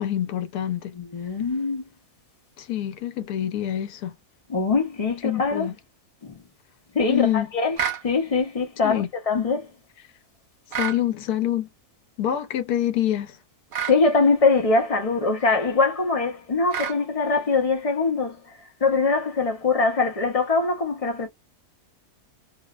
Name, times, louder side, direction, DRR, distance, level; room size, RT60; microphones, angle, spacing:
voice 1, 0.0-0.9 2.6-4.1 5.2-5.7 7.1-7.5 8.8-9.1 10.8-11.7 12.2-13.4, left 11 dB, 90° left, 1.2 m, -26 dB
voice 2, 1.0-1.8 4.5-5.7 6.2-6.4 6.9-7.8 8.0-9.7 13.8-21.3, left 4 dB, 45° left, 0.4 m, -23 dB
sound 1, 7.8-8.0 10.7-11.0 13.7-14.0 16.7-17.0, right 8 dB, 55° right, 0.6 m, -28 dB
2.9 x 2.0 x 2.3 m
omnidirectional pair, 1.6 m